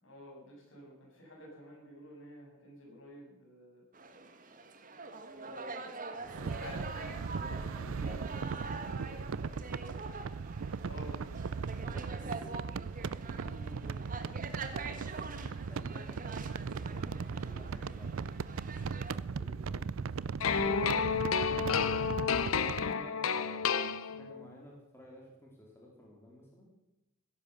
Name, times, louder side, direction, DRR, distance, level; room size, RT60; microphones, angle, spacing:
voice 1, 0.0-3.8 5.4-5.9 6.6-8.2 10.8-11.3 15.6-15.7 19.6-19.8, left 1 dB, 70° left, -2 dB, 7.6 m, -51 dB
sound 1, 3.9-19.2, right 4 dB, 40° right, 1.6 m, -45 dB
voice 2, 6.1-6.7 7.3-9.9 11.7-14.4 15.7-18.7 19.0-21.1 21.7-26.7, left 1 dB, 10° left, -2 dB, 3.4 m, -53 dB
sound 2, 6.2-22.9, right 5 dB, 80° right, 0.5 m, -38 dB
sound 3, 20.4-24.5, left 6 dB, 90° left, 0.8 m, -31 dB
17.0 x 11.0 x 6.9 m, 0.94 s
head